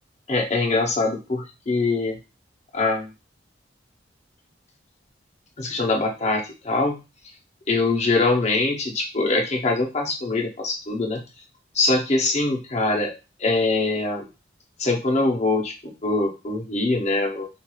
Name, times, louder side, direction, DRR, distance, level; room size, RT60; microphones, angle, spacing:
voice 1, 0.3-2.2 2.7-3.1 5.6-7.0 7.7-11.2 11.7-13.1 13.4-14.3 14.8-17.5, left 3 dB, 35° left, 1 dB, 0.7 m, -23 dB
3.0 x 2.4 x 2.3 m, 0.28 s
head